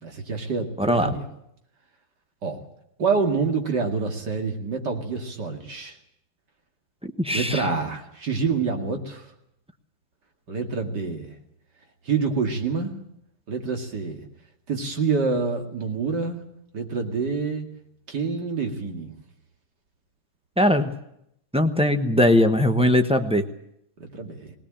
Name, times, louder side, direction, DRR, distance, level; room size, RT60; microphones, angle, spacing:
voice 1, 0.0-1.3 2.4-2.6 3.0-6.0 7.3-9.2 10.5-11.3 12.1-12.9 13.5-14.2 14.7-16.4 16.7-17.7 18.1-19.1 24.0-24.5, right 4 dB, 60° right, 3 dB, 2.9 m, -27 dB
voice 2, 0.8-1.1 7.0-7.6 20.6-21.0 21.5-23.4, left 1 dB, 5° right, 7 dB, 0.6 m, -20 dB
19.5 x 18.5 x 8.8 m, 0.78 s
omnidirectional pair, 2.1 m